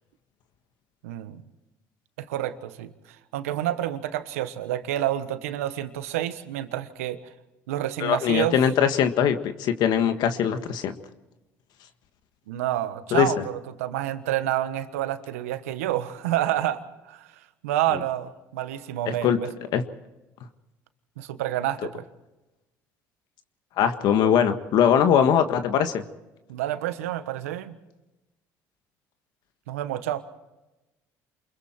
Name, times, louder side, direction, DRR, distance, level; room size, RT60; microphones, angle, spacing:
voice 1, 1.0-1.4 2.2-2.9 3.3-7.3 7.7-8.6 12.5-17.3 17.6-19.5 21.2-22.0 26.5-27.7 29.7-30.2, right 13 dB, 90° right, 11 dB, 1.4 m, -28 dB
voice 2, 8.0-11.0 13.1-13.3 17.9-18.0 19.1-19.4 19.7-19.8 23.8-26.0, left 8 dB, 65° left, 8 dB, 1.6 m, -21 dB
28.5 x 22.0 x 4.5 m, 1.0 s
hypercardioid pair, 70°, 8 cm